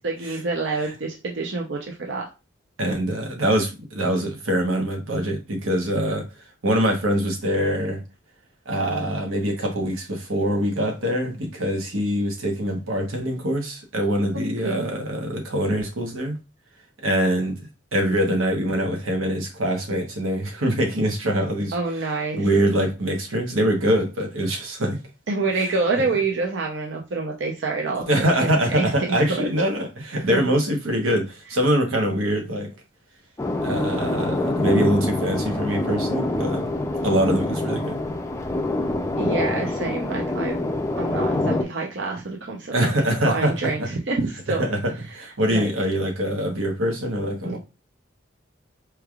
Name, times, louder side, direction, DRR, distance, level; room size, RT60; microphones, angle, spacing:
voice 1, 0.0-2.2 14.3-14.9 21.7-22.5 25.3-29.5 30.2-30.4 39.2-40.7 41.0-42.9 43.3-44.6 45.5-45.7 47.4-47.6, right 3 dB, 65° right, 0.6 m, -27 dB
voice 2, 2.8-6.3 6.6-8.0 8.7-16.4 17.0-17.6 17.9-21.7 22.3-25.0 28.1-32.7 33.6-36.6 37.0-38.0 42.7-43.9 44.6-47.6, equal, 90° right, 1.0 m, -24 dB
sound 1, 33.4-41.6, left 2 dB, 15° left, 0.4 m, -25 dB
4.5 x 3.3 x 2.3 m
head